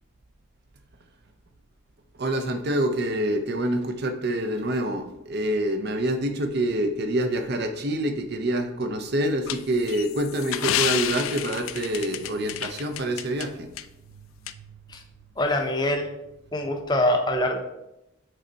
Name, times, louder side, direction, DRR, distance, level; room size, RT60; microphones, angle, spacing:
voice 1, 2.1-13.7 14.1-14.8, right 1 dB, 50° right, 7 dB, 0.6 m, -27 dB
sound 1, 9.5-13.5 13.8-13.9 14.5-14.6, left 12 dB, 75° left, 0.3 m, -29 dB
voice 2, 15.4-16.1 16.5-17.6, left 1 dB, 20° left, 4 dB, 0.6 m, -24 dB
6.5 x 4.4 x 3.9 m, 0.90 s
head